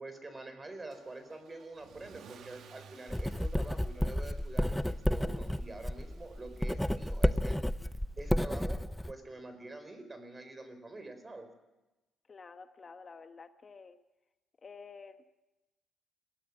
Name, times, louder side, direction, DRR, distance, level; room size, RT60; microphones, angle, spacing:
voice 1, 0.0-7.6 8.2-11.5, right 2 dB, 25° right, 9 dB, 4.5 m, -46 dB
Car / Engine starting / Accelerating revving vroom, 0.9-8.0, right 7 dB, 70° right, 1.6 m, -58 dB
Writing, 3.1-9.1, left 1 dB, 5° left, 0.7 m, -31 dB
voice 2, 12.3-14.0 14.6-15.3, left 5 dB, 35° left, 8 dB, 1.1 m, -50 dB
22.0 x 17.0 x 7.4 m, 1.0 s
cardioid pair, 90°, 0 cm